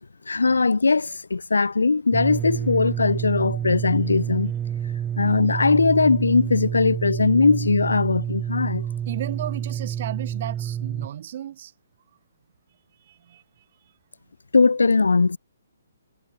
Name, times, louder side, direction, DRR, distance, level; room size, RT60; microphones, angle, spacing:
voice 1, 0.3-4.5 5.2-8.9 14.5-15.4, left 4 dB, 80° left, 1.9 m, -20 dB
sound 1, 2.1-11.1, right 9 dB, 15° right, 1.1 m, -29 dB
voice 2, 9.1-11.7 13.1-13.4, right 11 dB, 45° right, 5.2 m, -34 dB
figure-of-eight pair, 135°, 0 cm